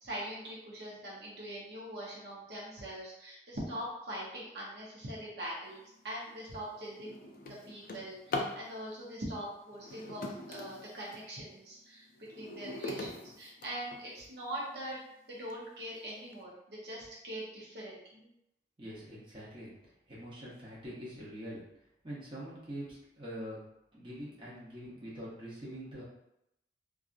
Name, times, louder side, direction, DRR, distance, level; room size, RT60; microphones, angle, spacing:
voice 1, 0.0-12.0 12.4-15.0 15.3-18.3, equal, 65° right, -5 dB, 0.7 m, -42 dB
Drawer open or close, 6.0-6.2 6.6-8.6 9.7-11.3 11.8-14.3 14.9-15.0 15.5-15.6 16.0-16.3, left 2 dB, 50° left, 0.3 m, -41 dB
voice 2, 18.8-19.7 20.1-21.6 22.0-23.6 23.9-26.0, equal, 30° right, -8 dB, 0.8 m, -44 dB
2.7 x 2.4 x 2.4 m, 0.82 s
head